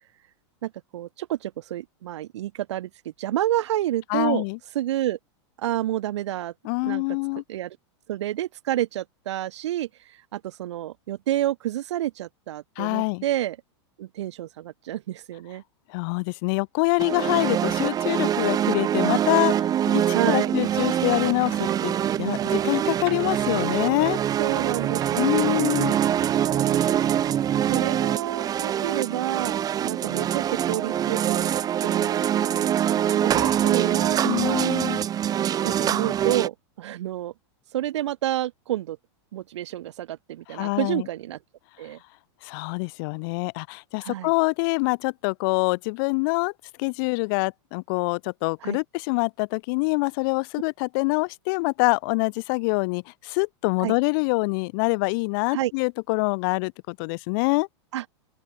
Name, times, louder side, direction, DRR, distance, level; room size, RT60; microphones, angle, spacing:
voice 1, 0.6-2.9 3.2-4.4 4.7-5.2 5.6-6.5 6.8-7.0 7.5-7.8 8.1-9.9 10.3-13.6 14.0-15.6 20.1-20.5 24.4-25.7 26.5-27.0 27.7-31.5 31.8-34.7 35.6-37.3 37.7-39.0 39.3-41.4 41.8-42.0 44.0-44.3 48.6-48.8 53.8-53.9 55.5-55.7 57.9-58.0, right 13 dB, 75° right, 2.1 m, -29 dB
voice 2, 4.1-4.6 6.6-7.4 12.8-13.2 15.9-19.5 19.9-24.2 25.2-26.0 34.2-35.0 40.5-41.1 42.4-46.5 46.8-57.7, left 30 dB, 50° left, 1.2 m, -25 dB
sound 1, 17.0-36.5, right 10 dB, 25° right, 2.5 m, -24 dB
sound 2, 21.0-27.8, right 20 dB, 60° right, 4.4 m, -41 dB
open air
supercardioid pair, 135°, 15 cm